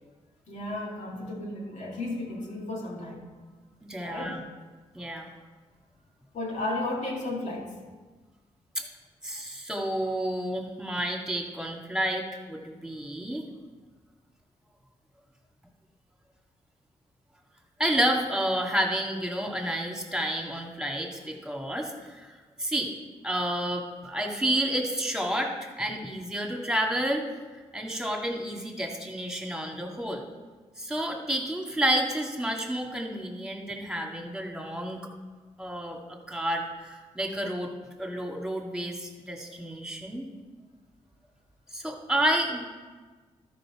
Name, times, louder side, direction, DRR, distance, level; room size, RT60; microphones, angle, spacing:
voice 1, 0.5-3.3 4.0-4.4 6.3-7.7, left 2 dB, 65° left, -2 dB, 2.4 m, -34 dB
voice 2, 3.8-4.4 4.9-5.3 8.8-8.9 9.2-13.4 17.8-22.9 23.2-27.2 27.7-30.2 30.8-35.0 35.6-37.7 38.0-40.3 41.7-42.7, right 1 dB, 5° right, 1 dB, 2.2 m, -30 dB
12.5 x 5.3 x 5.0 m, 1.4 s
supercardioid pair, 45°, 14 cm